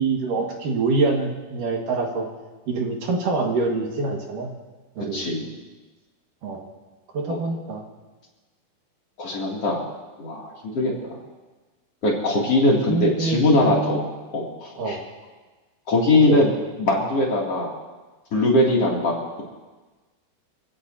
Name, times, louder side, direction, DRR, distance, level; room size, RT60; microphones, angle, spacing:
voice 1, 0.0-2.3 2.7-4.5 5.0-5.3 6.4-6.7 7.1-7.8 12.9-14.0 14.8-15.0 16.3-16.4, right 3 dB, 65° right, 0 dB, 3.3 m, -25 dB
voice 2, 5.1-5.5 7.3-7.4 9.2-9.8 10.2-11.2 12.0-14.0 14.3-15.0 15.9-16.5 16.8-17.7 18.3-19.4, left 2 dB, 45° left, -3 dB, 3.4 m, -21 dB
27.5 x 16.0 x 2.8 m, 1.2 s
omnidirectional pair, 4.2 m